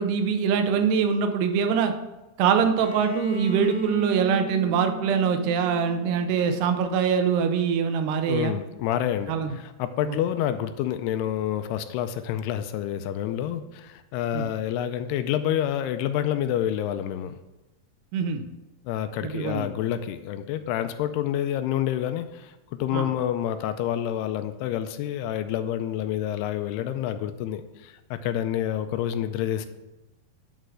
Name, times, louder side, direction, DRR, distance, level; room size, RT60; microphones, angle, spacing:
voice 1, 0.0-1.9 2.4-8.5 9.3-9.5 10.1-10.2 14.3-14.5 18.1-18.4 19.2-19.7 22.9-23.0, right 6 dB, 85° right, 7 dB, 2.9 m, -23 dB
Bowed string instrument, 2.8-6.6, right 2 dB, 15° right, 2.0 m, -35 dB
voice 2, 8.3-17.4 18.8-29.7, left 11 dB, 85° left, 9 dB, 2.6 m, -28 dB
10.5 x 4.4 x 6.3 m, 1.0 s
omnidirectional pair, 4.7 m